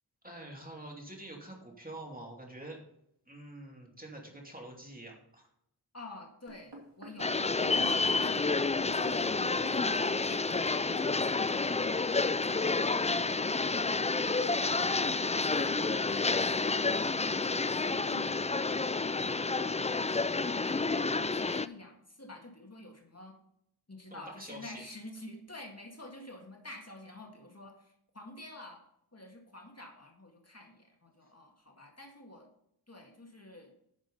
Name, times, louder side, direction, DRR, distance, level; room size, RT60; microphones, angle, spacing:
voice 1, 0.2-2.8 3.3-5.5 24.1-24.8, right 1 dB, 20° right, 0 dB, 2.8 m, -46 dB
voice 2, 5.9-18.8 19.2-23.4 23.9-28.8 29.1-32.5 32.9-33.7, left 1 dB, 35° left, 2 dB, 2.0 m, -49 dB
sound 1, 6.5-11.4 12.0-12.1, right 1 dB, 75° right, 2.7 m, -50 dB
sound 2, 7.2-21.7, left 3 dB, 15° left, 0.4 m, -29 dB
10.5 x 6.3 x 5.5 m, 0.74 s
wide cardioid pair, 45°, 41 cm